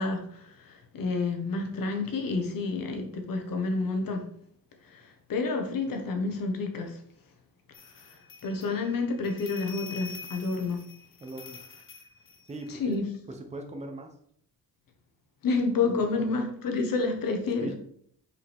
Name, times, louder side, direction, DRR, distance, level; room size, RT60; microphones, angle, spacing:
voice 1, 0.0-4.2 4.8-7.0 8.0-8.2 8.4-10.8 12.7-13.0 15.4-17.7, left 3 dB, 60° left, 4 dB, 1.3 m, -29 dB
sound 1, 7.7-12.9, left 4 dB, 30° left, 0.9 m, -46 dB
voice 2, 11.2-11.6 12.5-13.0 13.3-14.1 15.8-16.2 17.6-17.7, right 1 dB, 15° right, 4 dB, 0.8 m, -39 dB
5.7 x 4.9 x 3.5 m, 0.65 s
cardioid pair, 130°, 39 cm